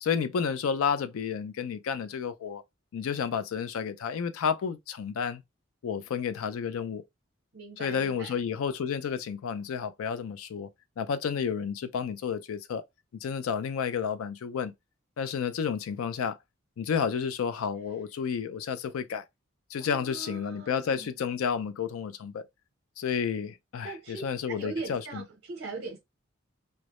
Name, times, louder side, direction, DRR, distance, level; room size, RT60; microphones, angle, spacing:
voice 1, 0.0-2.6 2.9-5.4 5.8-7.0 7.8-10.7 11.0-12.8 13.2-14.7 15.2-16.4 16.8-19.2 19.7-22.4 23.0-25.2, left 6 dB, 90° left, 0.4 m, -31 dB
voice 2, 7.5-8.4 19.8-21.1 23.8-26.0, right 3 dB, 55° right, 0.6 m, -40 dB
2.2 x 2.0 x 2.8 m
head